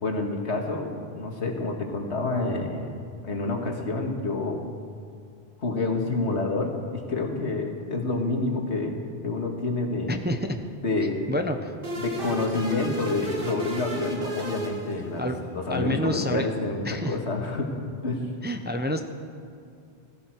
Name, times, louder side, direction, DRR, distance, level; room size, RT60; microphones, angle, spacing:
voice 1, 0.0-2.9 3.2-4.6 5.6-9.0 9.2-10.1 10.8-11.2 12.0-17.7 18.0-18.2, left 3 dB, 85° left, 2 dB, 2.0 m, -28 dB
voice 2, 10.1-10.6 11.3-11.8 15.2-15.4 15.7-16.5 16.8-17.2 18.4-19.0, equal, 10° right, 6 dB, 0.6 m, -28 dB
sound 1, 11.8-15.4, right 1 dB, 55° right, 2.0 m, -33 dB
17.0 x 16.0 x 4.6 m, 2.4 s
omnidirectional pair, 1.1 m